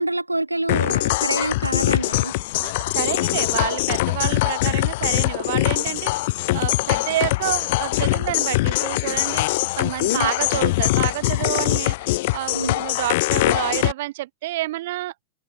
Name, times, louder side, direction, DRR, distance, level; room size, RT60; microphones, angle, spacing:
voice 1, 0.0-2.3 10.1-10.3 12.5-12.8, right 1 dB, 85° right, 2.1 m, -26 dB
sound 1, 0.7-13.9, left 19 dB, 50° left, 0.6 m, -22 dB
voice 2, 2.6-6.1 6.5-9.4 9.8-15.1, right 16 dB, 55° right, 1.0 m, -28 dB
figure-of-eight pair, 90°, 0 cm